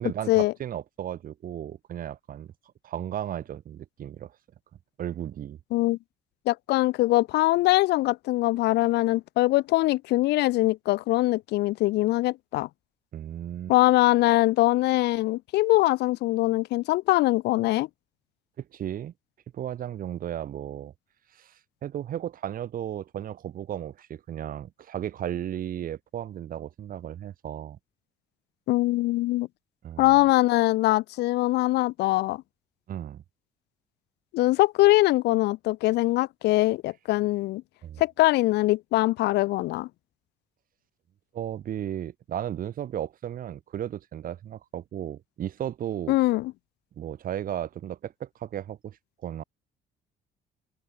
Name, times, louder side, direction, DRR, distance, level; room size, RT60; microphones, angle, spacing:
voice 1, 0.0-2.5 2.8-4.4 5.0-5.6 13.1-13.7 18.6-19.1 19.5-20.9 21.3-27.8 29.8-30.2 32.9-33.2 37.8-38.0 41.3-46.2 47.0-49.0 49.2-49.4, right 10 dB, 55° right, 3.0 m, -35 dB
voice 2, 6.5-12.7 13.7-17.9 28.7-29.5 30.0-32.4 34.3-37.6 38.0-39.9 46.1-46.5, left 18 dB, 80° left, 1.0 m, -22 dB
cardioid pair, 110°, 17 cm